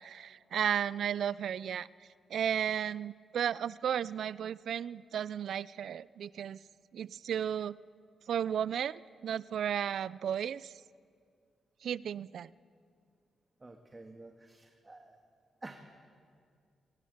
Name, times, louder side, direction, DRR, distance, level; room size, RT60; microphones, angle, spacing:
voice 1, 0.0-1.9 2.3-6.6 6.9-7.8 8.3-10.7 11.8-12.5, right 9 dB, 75° right, 19 dB, 0.5 m, -34 dB
voice 2, 13.6-15.2 15.6-15.8, right 2 dB, 25° right, 4 dB, 1.8 m, -50 dB
22.5 x 19.0 x 8.2 m, 2.2 s
cardioid pair, 75°, 0 cm